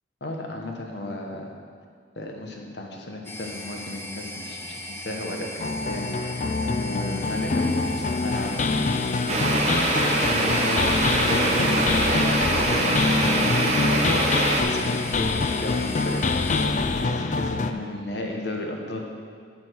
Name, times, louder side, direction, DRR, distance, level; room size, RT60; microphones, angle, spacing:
voice 1, 0.2-1.5 2.2-9.9 10.2-19.0, left 1 dB, 65° left, 1 dB, 1.2 m, -34 dB
sound 1, 3.2-16.7, left 2 dB, 15° left, 0.7 m, -38 dB
sound 2, 5.6-17.7, left 3 dB, 40° left, 0.3 m, -25 dB
sound 3, 9.3-14.6, right 2 dB, 35° right, 0.9 m, -24 dB
11.0 x 6.1 x 4.7 m, 2.1 s
head